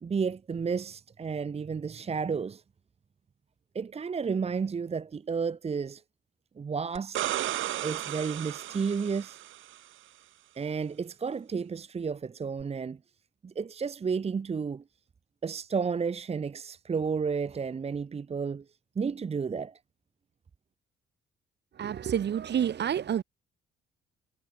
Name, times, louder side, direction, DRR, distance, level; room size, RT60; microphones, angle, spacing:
voice 1, 0.0-2.6 3.7-6.0 6.6-7.2 7.8-9.4 10.5-13.0 13.4-14.8 15.4-18.6 19.0-19.8, right 5 dB, 30° right, 0.9 m, -32 dB
sound 1, 7.0-9.8 12.6-12.7, right 14 dB, 80° right, 1.4 m, -34 dB
voice 2, 21.8-23.2, right 9 dB, 60° right, 3.7 m, -28 dB
cardioid pair, 90°, 20 cm